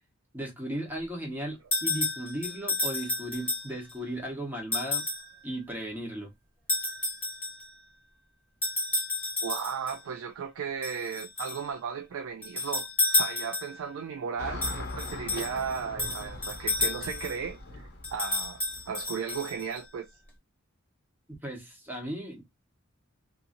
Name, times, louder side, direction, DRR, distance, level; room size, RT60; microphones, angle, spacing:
voice 1, 0.3-5.0 5.4-6.3 21.4-22.4, right 1 dB, 10° right, 1.0 m, -36 dB
sound 1, 1.7-3.9 4.7-5.3 6.7-7.7 8.6-10.0 10.8-11.6 12.4-13.9 14.6-17.4 18.0-19.8, left 2 dB, 10° left, 1.3 m, -31 dB
voice 2, 9.4-20.1, right 6 dB, 70° right, 0.4 m, -35 dB
Car passing by / Traffic noise roadway noise, 14.4-19.0, left 2 dB, 55° left, 0.8 m, -41 dB
2.8 x 2.5 x 2.6 m
head